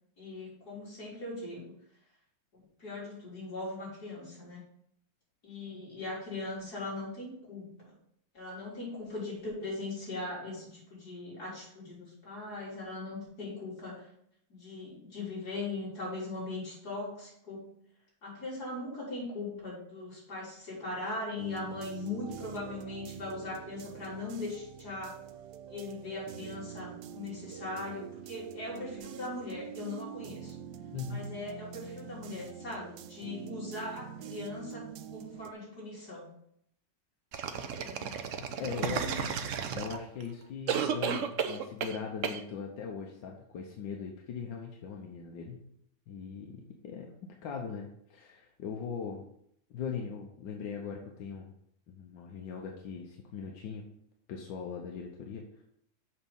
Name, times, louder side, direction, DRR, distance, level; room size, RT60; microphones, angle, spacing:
voice 1, 0.2-1.7 2.5-4.6 5.4-7.7 8.3-14.1 14.5-17.7 18.2-25.2 25.7-30.5 31.1-36.3 37.4-38.2 38.5-39.3, left 2 dB, 55° left, -6 dB, 4.4 m, -40 dB
sound 1, 21.4-35.5, right 9 dB, 75° right, 1.2 m, -46 dB
voice 2, 30.9-31.3 38.6-39.4 39.7-45.6 46.1-49.3 49.7-51.5 51.9-53.9 54.3-55.6, left 6 dB, 90° left, 1 dB, 1.7 m, -40 dB
sound 2, 37.3-40.2 40.7-42.0 42.2-42.4, right 7 dB, 60° right, 0.8 m, -33 dB
7.3 x 5.9 x 5.4 m, 0.71 s
omnidirectional pair, 2.0 m